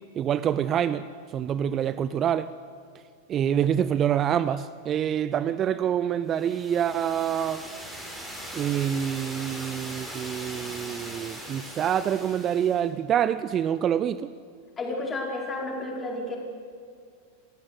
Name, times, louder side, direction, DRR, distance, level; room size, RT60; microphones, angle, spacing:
voice 1, 0.2-1.1 1.3-2.5 3.3-7.7 8.5-14.3, right 9 dB, 30° right, 15 dB, 0.6 m, -26 dB
sound 1, 6.3-12.9, equal, 5° right, 5.3 m, -40 dB
voice 2, 14.8-16.4, left 2 dB, 20° left, 0 dB, 4.9 m, -31 dB
28.5 x 15.0 x 8.2 m, 2.2 s
figure-of-eight pair, 90°, 0 cm